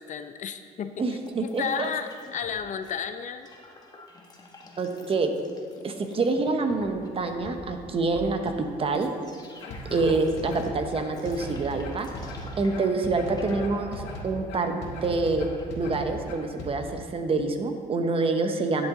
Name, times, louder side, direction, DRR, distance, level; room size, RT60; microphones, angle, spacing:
voice 1, 0.0-3.5 5.8-5.9 9.7-10.1 18.8-18.9, left 7 dB, 45° left, 9 dB, 0.5 m, -34 dB
voice 2, 1.0-1.6 4.8-5.3 5.8-8.5 8.8-9.1 9.9-12.1 12.6-15.5 15.8-18.9, right 3 dB, 35° right, 6 dB, 0.9 m, -26 dB
sound 1, 1.2-2.9 3.2-15.7, left 2 dB, 25° left, 1.3 m, -46 dB
sound 2, 9.6-16.7, equal, 90° left, 1.7 m, -38 dB
11.5 x 7.9 x 3.8 m, 2.2 s
cardioid pair, 110°, 17 cm